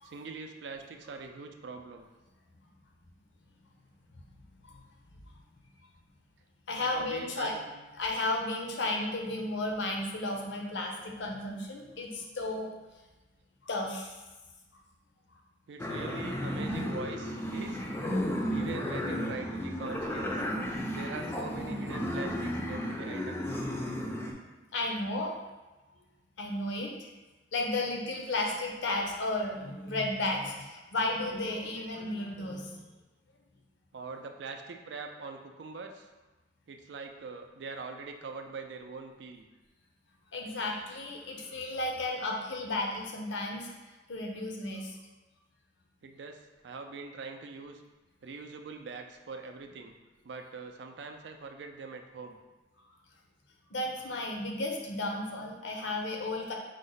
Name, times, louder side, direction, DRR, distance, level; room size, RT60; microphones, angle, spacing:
voice 1, 0.0-2.1 6.8-7.8 15.7-17.8 18.5-20.4 20.9-23.6 33.9-36.1 36.7-39.5 46.0-47.8 48.2-50.0 50.2-52.4, right 4 dB, 65° right, 5 dB, 0.4 m, -43 dB
voice 2, 6.7-7.5 8.0-12.7 13.7-14.1 24.7-25.3 26.4-27.1 27.5-32.8 40.3-43.7 44.1-44.9 53.7-56.5, left 2 dB, 75° left, 1 dB, 0.7 m, -33 dB
sound 1, 15.8-24.3, equal, 15° left, 0.4 m, -33 dB
5.1 x 2.1 x 3.9 m, 1.1 s
head